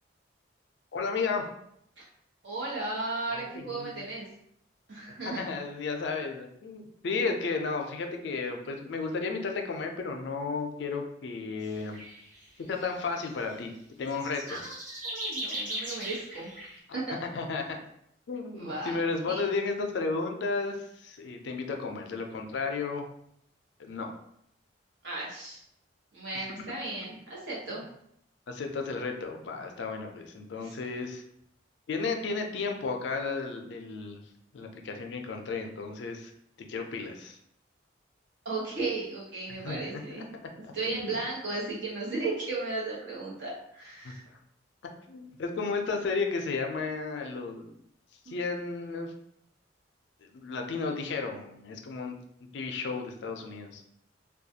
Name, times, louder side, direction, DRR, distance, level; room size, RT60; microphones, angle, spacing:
voice 1, 0.9-1.4 3.3-4.0 5.2-12.0 12.7-13.7 14.0-14.6 16.9-17.8 18.3-23.0 23.8-24.1 26.3-26.5 27.7-27.8 28.5-31.2 31.9-34.2 34.5-36.3 36.6-37.4 39.5-40.2 40.6-40.7 41.0-41.2 44.0-44.1 45.1-47.7 48.3-49.1 50.2-52.2 52.5-53.8, left 4 dB, 65° left, 3 dB, 0.4 m, -33 dB
voice 2, 2.4-4.2 4.9-5.5 14.5-14.7 15.0-16.5 16.9-17.2 18.5-19.0 19.3-19.4 25.0-25.6 26.1-27.8 30.6-30.7 38.4-40.3 40.7-44.2 48.3-48.4, right 3 dB, 70° right, -5 dB, 0.9 m, -35 dB
sound 1, 11.6-11.7 11.9-12.4 12.7-13.5 14.1-16.8, right 1 dB, 40° right, 1.1 m, -38 dB
2.3 x 2.2 x 2.7 m, 0.72 s
head